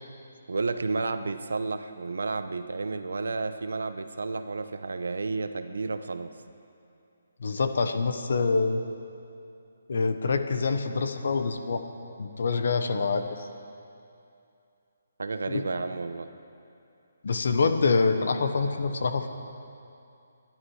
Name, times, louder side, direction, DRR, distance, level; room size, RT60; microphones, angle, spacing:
voice 1, 0.5-6.3 15.2-16.3, right 3 dB, 85° right, 9 dB, 0.9 m, -31 dB
voice 2, 7.4-8.8 9.9-11.8 12.2-13.2 15.5-15.6 17.2-19.3, left 4 dB, 50° left, 8 dB, 1.0 m, -26 dB
24.5 x 11.0 x 4.9 m, 2.6 s
hypercardioid pair, 175°, 0 cm